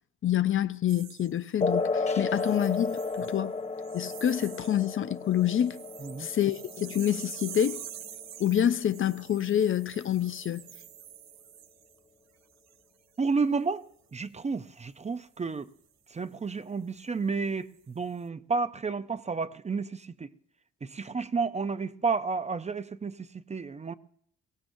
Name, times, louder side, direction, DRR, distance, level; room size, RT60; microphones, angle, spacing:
voice 1, 0.2-3.5 3.9-5.8 6.2-7.8 8.4-10.6, left 10 dB, 45° left, 0.5 m, -27 dB
sound 1, 0.9-1.8 2.3-3.5 3.8-4.9 5.2-12.0 12.5-12.8, right 10 dB, 60° right, 0.8 m, -46 dB
sound 2, 1.6-8.6, left 3 dB, 20° left, 1.0 m, -33 dB
voice 2, 13.2-15.7 16.1-20.3 20.8-23.9, right 4 dB, 25° right, 0.5 m, -31 dB
22.0 x 17.0 x 2.6 m
cardioid pair, 90°, 30 cm